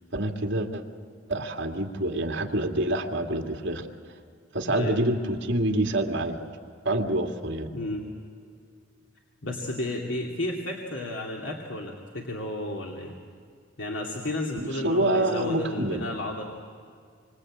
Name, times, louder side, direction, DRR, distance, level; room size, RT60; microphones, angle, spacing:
voice 1, 0.1-0.8 1.3-3.9 4.5-6.4 6.8-7.7 14.6-16.0, right 1 dB, 65° right, 3 dB, 2.4 m, -27 dB
voice 2, 4.6-5.0 7.7-8.0 9.4-13.1 13.8-16.4, left 1 dB, 75° left, -1 dB, 2.5 m, -32 dB
27.0 x 25.0 x 8.8 m, 2.2 s
head